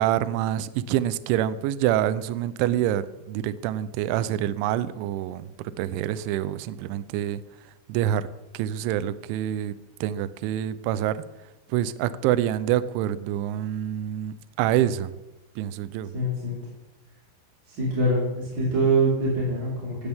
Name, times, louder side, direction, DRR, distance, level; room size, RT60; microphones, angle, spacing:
voice 1, 0.0-5.5 5.8-7.4 7.9-8.3 8.5-9.7 10.0-11.1 11.7-15.1 15.6-16.1, right 12 dB, 80° right, 14 dB, 3.0 m, -26 dB
voice 2, 16.1-16.6 17.7-20.1, right 2 dB, 25° right, -7 dB, 4.8 m, -24 dB
18.0 x 16.0 x 3.6 m, 1.0 s
omnidirectional pair, 5.7 m